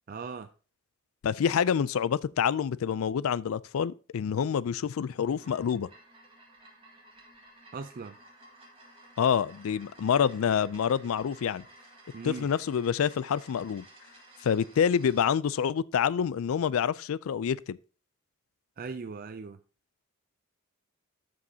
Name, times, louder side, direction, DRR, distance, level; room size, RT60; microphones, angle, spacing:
voice 1, 0.1-0.5 7.7-8.1 12.1-12.5 18.8-19.6, right 4 dB, 40° right, 0.4 m, -39 dB
voice 2, 1.2-5.9 9.2-11.6 12.2-13.8 14.4-17.8, left 7 dB, 70° left, 0.3 m, -27 dB
sound 1, 5.1-15.3, right 1 dB, 25° right, 1.9 m, -55 dB
13.5 x 5.2 x 2.8 m
head